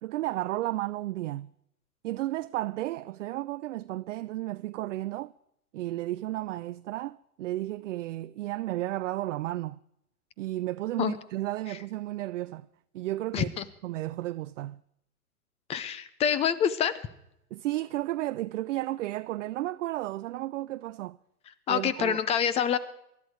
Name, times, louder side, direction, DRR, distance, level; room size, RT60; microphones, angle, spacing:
voice 1, 0.0-1.5 2.0-5.3 5.7-9.8 10.4-12.7 12.9-13.5 13.8-14.8 17.5-21.2 21.7-22.2, right 16 dB, 55° right, 0.5 m, -33 dB
voice 2, 13.3-13.6 15.7-16.9 21.7-22.8, left 8 dB, 15° left, 0.5 m, -26 dB
19.5 x 12.5 x 4.7 m
hypercardioid pair, 115°, 44 cm